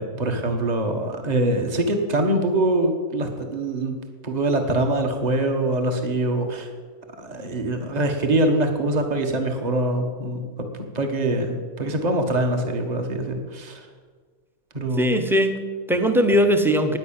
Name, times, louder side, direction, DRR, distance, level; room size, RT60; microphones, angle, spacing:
voice 1, 0.0-4.0 4.2-6.7 7.2-10.5 10.9-13.9 14.7-15.1, right 1 dB, 30° right, 4 dB, 1.5 m, -24 dB
voice 2, 15.0-17.0, equal, ahead, 7 dB, 0.8 m, -20 dB
10.5 x 9.9 x 8.8 m, 1.5 s
omnidirectional pair, 1.5 m